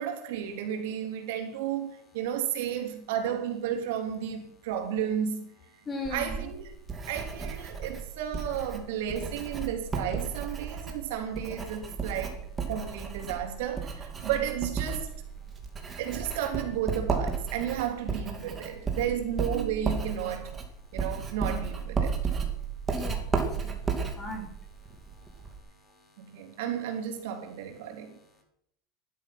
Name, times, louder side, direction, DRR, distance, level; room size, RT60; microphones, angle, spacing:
voice 1, 0.0-5.5 6.1-6.7 7.1-12.4 12.7-15.1 16.0-20.6 20.9-22.2 26.2-28.2, right 9 dB, 75° right, 3.7 m, -33 dB
voice 2, 5.9-6.3 22.9-23.2 23.5-24.5, left 2 dB, 15° left, 4.2 m, -37 dB
Writing, 6.0-25.6, right 5 dB, 15° right, 2.5 m, -34 dB
17.5 x 12.0 x 6.2 m
cardioid pair, 175°, 0 cm